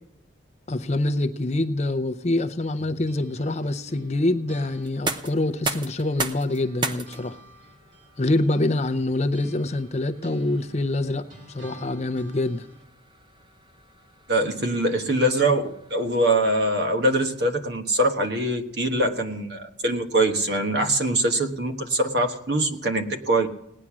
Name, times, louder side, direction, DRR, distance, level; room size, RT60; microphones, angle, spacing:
voice 1, 0.7-7.4 8.2-12.7, left 2 dB, 35° left, 9 dB, 0.6 m, -25 dB
sound 1, 2.8-6.2 6.5-12.9, right 2 dB, 75° right, 2.8 m, -50 dB
sound 2, 4.8-16.6, right 3 dB, 25° right, 0.7 m, -37 dB
voice 2, 14.3-23.5, right 1 dB, 60° right, 5 dB, 1.3 m, -23 dB
18.0 x 10.0 x 6.1 m, 0.80 s
head